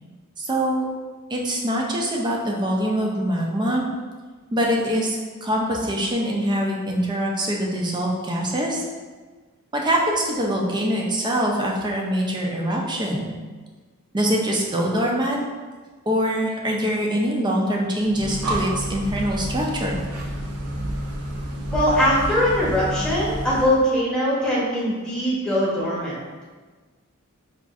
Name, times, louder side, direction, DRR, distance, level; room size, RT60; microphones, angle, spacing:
voice 1, 0.4-0.9 1.3-3.9 4.5-8.8 9.7-13.2 14.1-15.4 16.1-20.0, equal, 20° right, -1 dB, 0.5 m, -24 dB
Breathing, 18.0-23.8, right 1 dB, 85° right, 0.6 m, -29 dB
voice 2, 21.7-26.2, equal, 5° left, -8 dB, 1.0 m, -21 dB
5.0 x 2.5 x 2.4 m, 1.4 s
head